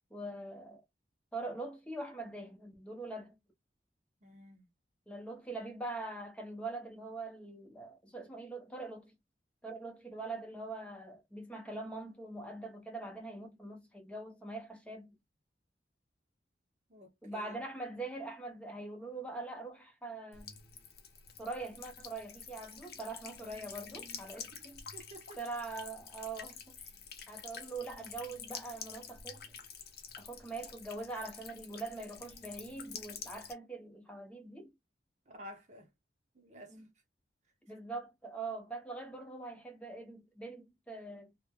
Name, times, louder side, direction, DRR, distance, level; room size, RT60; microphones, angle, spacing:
voice 1, 0.1-0.8 1.3-3.4 5.1-9.1 9.6-15.1 17.2-20.5 21.4-24.8 25.4-26.8 27.3-29.5 30.2-34.7 36.7-36.9 37.7-41.3, right 2 dB, 5° left, 0.7 m, -43 dB
voice 2, 4.2-4.7 16.9-17.6 24.5-24.7 24.9-25.4 35.3-35.9 36.3-36.8, equal, 40° right, 0.7 m, -52 dB
Buzz / Water tap faucet / Trickle dribble, 20.3-33.5, left 6 dB, 60° left, 0.6 m, -48 dB
3.1 x 2.1 x 2.2 m
head